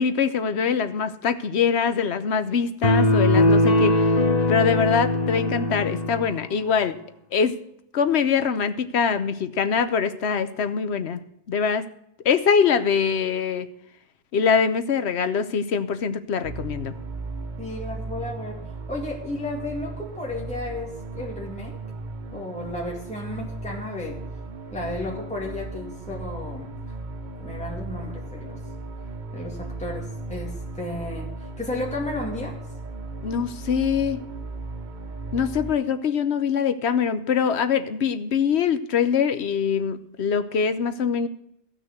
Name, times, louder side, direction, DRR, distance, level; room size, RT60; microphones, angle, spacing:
voice 1, 0.0-4.1 4.5-7.0 7.3-7.6 7.9-11.2 11.5-11.9 12.2-13.7 14.3-16.9 33.2-34.2 35.3-41.3, left 6 dB, 65° left, 12 dB, 1.1 m, -23 dB
sound 1, 2.8-6.4, left 1 dB, 40° left, 1.1 m, -20 dB
sound 2, 16.4-35.7, right 2 dB, 45° right, 0.8 m, -36 dB
voice 2, 17.6-18.6 18.9-21.8 22.3-24.2 24.7-27.0 27.4-28.6 29.3-32.6, left 2 dB, 5° left, -2 dB, 2.2 m, -33 dB
15.0 x 6.2 x 8.1 m, 0.75 s
omnidirectional pair, 1.2 m